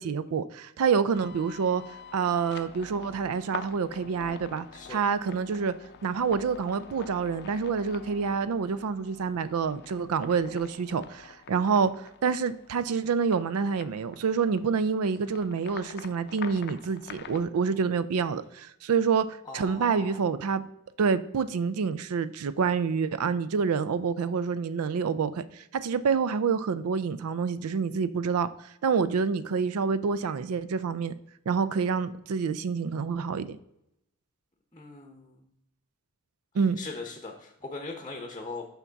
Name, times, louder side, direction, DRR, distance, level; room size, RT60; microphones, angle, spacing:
voice 1, 0.0-1.8 2.1-5.7 6.0-20.6 21.0-28.5 28.8-31.1 31.5-33.6 36.5-36.8, right 5 dB, 75° right, 0.4 m, -27 dB
sound 1, 1.1-17.4, left 6 dB, 50° left, 0.5 m, -46 dB
voice 2, 4.7-5.0 19.4-20.2 34.7-35.5 36.5-38.7, left 3 dB, 20° left, 0.8 m, -40 dB
5.9 x 5.8 x 4.0 m
head